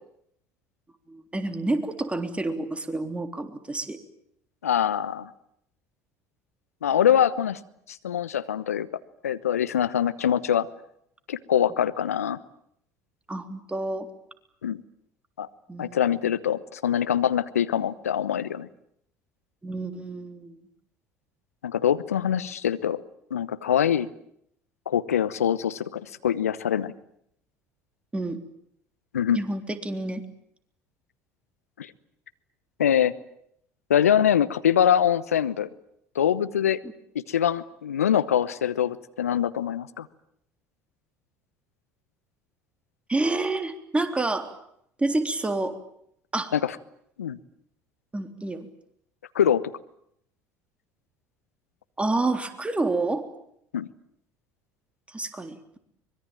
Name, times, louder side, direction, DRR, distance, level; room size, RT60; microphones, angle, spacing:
voice 1, 1.1-4.0 13.3-14.1 15.7-16.0 19.6-20.6 28.1-28.4 29.4-30.2 36.8-36.9 43.1-44.5 45.0-45.7 46.3-46.5 48.1-48.7 52.0-53.2 55.1-55.8, right 2 dB, 15° right, 7 dB, 3.5 m, -28 dB
voice 2, 4.6-5.3 6.8-7.6 7.9-8.9 9.2-10.7 11.3-12.4 14.6-14.8 15.4-15.5 15.8-18.7 21.6-23.0 23.3-24.1 24.9-26.9 29.1-29.4 31.8-31.9 32.8-33.1 33.9-35.7 36.1-36.8 37.1-40.1 46.5-46.7 47.2-47.4 49.3-49.6 53.7-53.9, left 9 dB, 85° left, 15 dB, 1.0 m, -24 dB
24.5 x 22.0 x 9.0 m, 0.73 s
hypercardioid pair, 65°, 8 cm